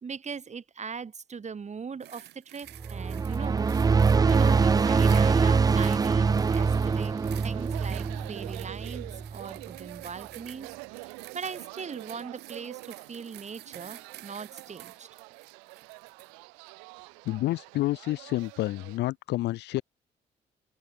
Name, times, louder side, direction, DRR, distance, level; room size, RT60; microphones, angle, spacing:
voice 1, 0.0-3.7 4.2-15.1, right 6 dB, 40° right, 1.8 m, -40 dB
sound 1, 2.0-16.3 17.0-17.1, right 14 dB, 70° right, 0.8 m, -50 dB
sound 2, 2.8-9.4, right 5 dB, 20° right, 0.4 m, -24 dB
sound 3, 3.3-19.0, right 40 dB or more, 90° right, 2.4 m, -47 dB
voice 2, 17.2-19.8, left 16 dB, 75° left, 0.8 m, -29 dB
hypercardioid pair, 50°, 18 cm